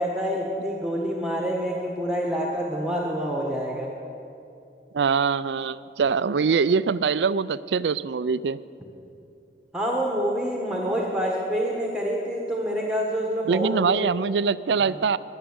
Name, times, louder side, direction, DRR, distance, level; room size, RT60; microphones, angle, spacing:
voice 1, 0.0-3.9 9.7-14.1 14.8-14.9, equal, 5° right, -1 dB, 1.4 m, -27 dB
voice 2, 4.9-8.6 13.5-15.2, right 5 dB, 90° right, 17 dB, 0.4 m, -23 dB
21.5 x 7.5 x 8.8 m, 2.7 s
head